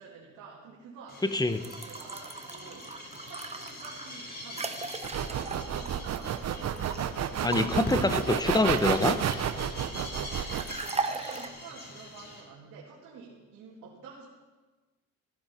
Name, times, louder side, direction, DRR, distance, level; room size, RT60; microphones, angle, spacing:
voice 1, 0.0-6.5 10.2-14.3, right 5 dB, 90° right, -5 dB, 2.5 m, -49 dB
sound 1, 1.1-12.4, left 1 dB, 35° left, 4.2 m, -43 dB
voice 2, 1.2-1.6 7.4-9.2, left 2 dB, 15° left, 11 dB, 0.9 m, -25 dB
sound 2, 1.5-7.0 7.5-9.6 10.6-11.5, right 4 dB, 20° right, 1.1 m, -38 dB
sound 3, 5.0-10.7, right 9 dB, 60° right, 0.9 m, -30 dB
14.5 x 14.5 x 4.5 m, 1.3 s
cardioid pair, 90°, 30 cm